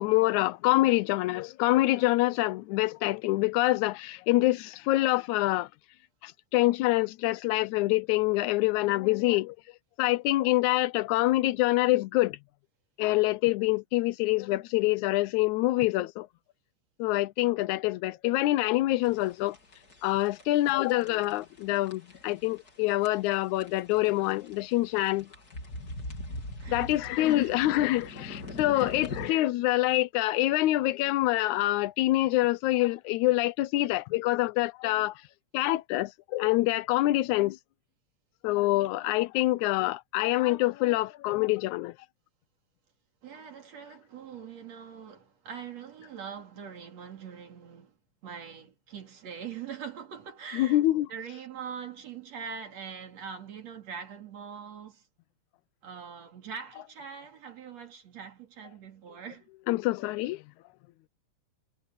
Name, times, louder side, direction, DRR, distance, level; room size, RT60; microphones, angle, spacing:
voice 1, 0.0-5.7 6.2-9.6 10.0-12.4 13.0-16.3 17.0-19.6 20.0-25.3 26.7-35.1 35.5-37.6 38.4-41.9 50.5-51.1 59.7-60.4, left 17 dB, 85° left, 2.0 m, -26 dB
sound 1, 19.0-29.3, left 2 dB, 30° left, 3.6 m, -41 dB
voice 2, 26.3-26.9 27.2-27.6 28.7-29.0 43.2-55.1 55.8-59.5 60.0-60.1, right 7 dB, 60° right, 3.7 m, -43 dB
omnidirectional pair, 3.4 m